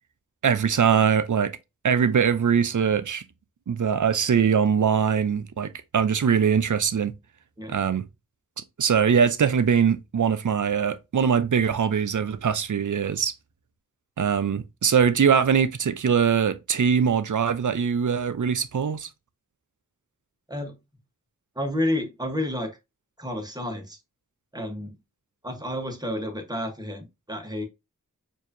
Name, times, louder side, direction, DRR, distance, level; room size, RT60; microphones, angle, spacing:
voice 1, 0.4-1.6 1.8-3.2 3.7-7.1 7.7-8.1 8.8-13.3 14.2-19.1, right 7 dB, 65° right, 0.5 m, -22 dB
voice 2, 21.5-22.8 23.2-24.0 24.5-25.0 25.4-27.6, left 1 dB, 10° right, 1.1 m, -30 dB
4.6 x 2.7 x 2.6 m
wide cardioid pair, 50°, 33 cm